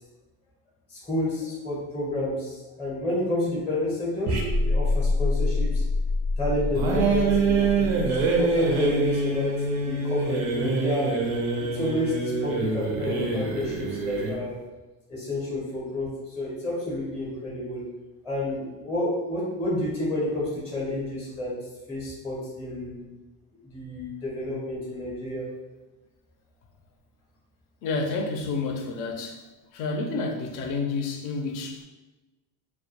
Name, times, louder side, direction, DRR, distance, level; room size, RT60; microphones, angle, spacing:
voice 1, 0.9-5.8 6.4-11.2 11.6-14.6 15.1-17.9 18.2-21.6 21.9-23.1 23.6-25.5, left 1 dB, 5° left, -5 dB, 0.6 m, -30 dB
sound 1, 4.3-8.9, left 2 dB, 45° right, 0.5 m, -26 dB
sound 2, 6.7-14.4, right 3 dB, 90° right, 0.7 m, -25 dB
voice 2, 27.8-29.4 29.7-31.8, left 3 dB, 55° left, 3 dB, 0.5 m, -29 dB
2.2 x 2.1 x 2.8 m, 1.1 s
cardioid pair, 135°, 40 cm